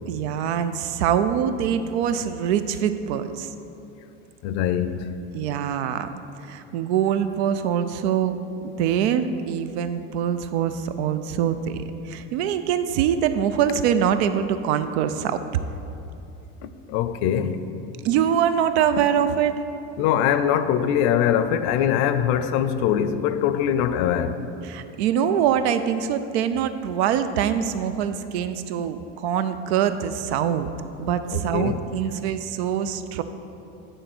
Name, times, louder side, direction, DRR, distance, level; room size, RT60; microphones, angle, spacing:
voice 1, 0.1-3.5 5.3-6.1 6.4-15.4 18.0-19.6 24.6-30.7 31.0-33.2, right 8 dB, 85° right, 11 dB, 0.5 m, -24 dB
voice 2, 4.4-5.1 16.6-17.6 20.0-24.5 31.3-31.8, left 9 dB, 60° left, 11 dB, 0.5 m, -22 dB
9.2 x 3.8 x 6.1 m, 2.8 s
supercardioid pair, 130°, 32 cm